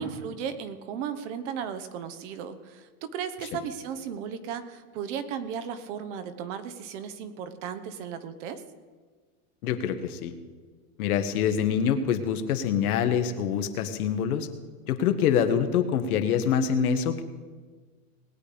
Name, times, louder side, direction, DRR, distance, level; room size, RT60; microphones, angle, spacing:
voice 1, 0.0-8.6, right 7 dB, 50° right, 11 dB, 1.2 m, -35 dB
voice 2, 9.6-10.3 11.0-14.5 14.9-17.2, left 8 dB, 70° left, 8 dB, 1.4 m, -25 dB
19.5 x 8.6 x 5.1 m, 1.5 s
supercardioid pair, 140°, 46 cm